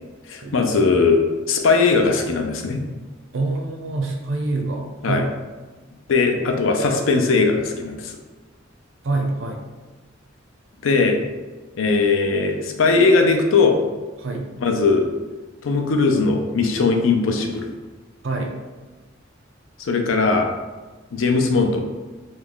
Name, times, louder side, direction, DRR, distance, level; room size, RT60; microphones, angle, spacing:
voice 1, 0.3-1.2 1.5-2.8 5.0-5.2 6.1-8.1 10.8-11.2 11.8-13.8 14.6-15.1 15.6-17.7 19.8-20.5 21.1-21.8, left 4 dB, 75° left, 4 dB, 0.5 m, -19 dB
voice 2, 3.3-5.3 9.0-9.6 14.2-14.5 18.2-18.6, right 2 dB, 70° right, 2 dB, 0.6 m, -26 dB
3.1 x 2.2 x 3.7 m, 1.3 s
head